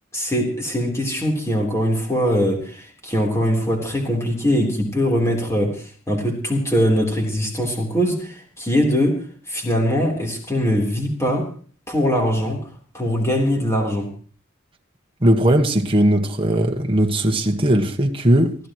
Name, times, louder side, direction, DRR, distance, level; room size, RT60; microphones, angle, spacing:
voice 1, 0.1-9.2 9.5-11.5 11.9-12.6 12.9-14.1, equal, 15° left, 3.8 m, -21 dB
voice 2, 15.2-18.5, right 1 dB, 25° right, 1.5 m, -18 dB
25.5 x 15.0 x 3.1 m
head